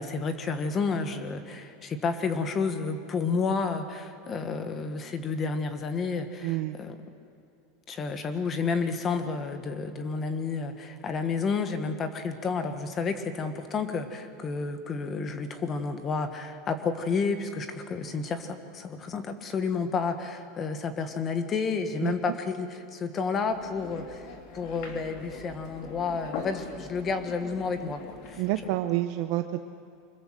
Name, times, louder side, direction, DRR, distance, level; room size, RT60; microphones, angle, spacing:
voice 1, 0.0-7.0 7.9-28.4 28.7-28.8, left 4 dB, 20° left, 9 dB, 1.6 m, -31 dB
voice 2, 6.4-6.8 22.0-22.1 28.4-29.6, right 15 dB, 50° right, 8 dB, 0.9 m, -28 dB
sound 1, 23.5-28.5, left 4 dB, 55° left, 3.5 m, -42 dB
25.0 x 21.5 x 7.7 m, 2.6 s
supercardioid pair, 170°, 0 cm